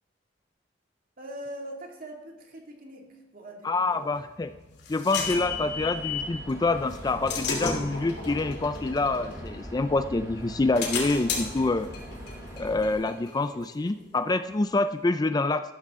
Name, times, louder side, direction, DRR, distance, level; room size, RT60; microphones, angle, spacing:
voice 1, 1.2-4.1 5.2-5.3, right 1 dB, 50° right, 1 dB, 2.3 m, -42 dB
voice 2, 3.6-4.5 4.9-11.9 12.6-15.6, left 3 dB, 20° left, 11 dB, 0.4 m, -26 dB
sound 1, 4.2-6.4 6.9-10.0 10.4-13.9, left 5 dB, 65° left, 2.8 m, -34 dB
sound 2, 5.1-13.0, equal, 20° right, 3.3 m, -42 dB
13.5 x 12.5 x 3.7 m, 1.0 s
head